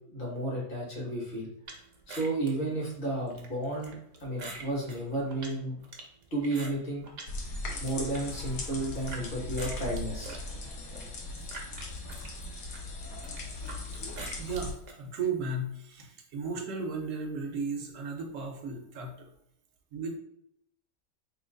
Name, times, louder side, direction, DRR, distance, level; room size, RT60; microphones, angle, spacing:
voice 1, 0.0-1.5 2.1-5.8 6.3-7.1 7.8-11.0, right 1 dB, 35° left, -4 dB, 1.3 m, -33 dB
sound 1, 1.7-7.3 7.7-9.2 9.6-15.0, right 3 dB, 50° right, 0.5 m, -46 dB
sound 2, 7.3-14.7, left 2 dB, 75° left, 1.2 m, -38 dB
voice 2, 14.4-19.3 19.9-20.2, right 4 dB, 65° right, 3 dB, 1.0 m, -35 dB
3.1 x 2.9 x 3.8 m, 0.75 s
omnidirectional pair, 1.5 m